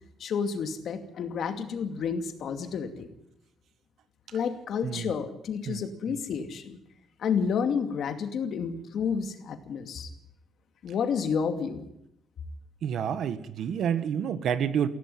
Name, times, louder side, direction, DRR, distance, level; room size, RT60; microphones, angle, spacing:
voice 1, 0.2-3.1 4.3-6.8 7.2-10.1 10.8-11.9, left 6 dB, 55° left, 7 dB, 2.4 m, -30 dB
voice 2, 12.8-14.9, right 8 dB, 60° right, 13 dB, 1.4 m, -28 dB
16.5 x 16.0 x 9.6 m, 0.76 s
cardioid pair, 170°, 0 cm